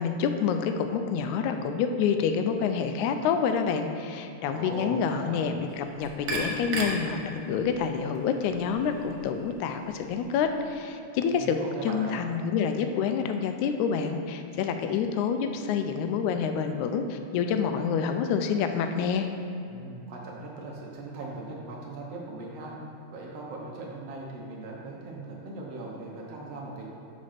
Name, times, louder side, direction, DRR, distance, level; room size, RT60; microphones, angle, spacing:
voice 1, 0.0-19.3, left 6 dB, 85° left, 7 dB, 2.0 m, -28 dB
voice 2, 4.4-5.4 11.3-12.2 19.7-22.7 23.1-26.9, right 2 dB, 65° right, -3 dB, 1.8 m, -39 dB
sound 1, 5.7-10.8, right 1 dB, 85° right, 2.4 m, -37 dB
6.4 x 5.1 x 5.7 m, 2.7 s
omnidirectional pair, 3.4 m